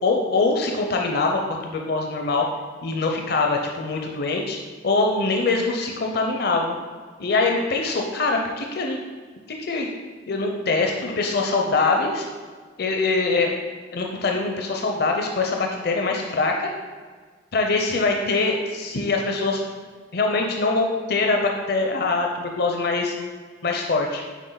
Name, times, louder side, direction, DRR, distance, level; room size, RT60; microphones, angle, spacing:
voice 1, 0.0-2.5 2.8-4.6 4.8-6.8 7.2-9.0 9.6-9.9 10.3-12.3 12.8-16.7 17.5-19.6 20.1-23.1 23.6-24.2, left 3 dB, 60° left, 1 dB, 0.7 m, -23 dB
8.2 x 4.8 x 3.9 m, 1.5 s
head